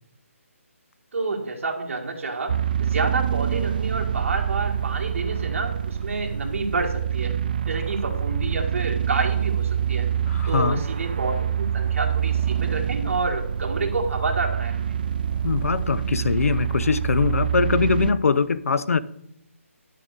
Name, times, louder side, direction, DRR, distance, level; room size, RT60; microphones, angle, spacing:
voice 1, 1.1-7.4 7.7-10.1 10.5-14.8, right 3 dB, 60° right, 1.9 m, -29 dB
sound 1, 2.5-18.1, right 9 dB, 40° right, 0.3 m, -26 dB
voice 2, 10.3-10.8 15.4-19.0, left 5 dB, 75° left, 0.6 m, -22 dB
10.5 x 7.3 x 4.0 m
hypercardioid pair, 165°, 8 cm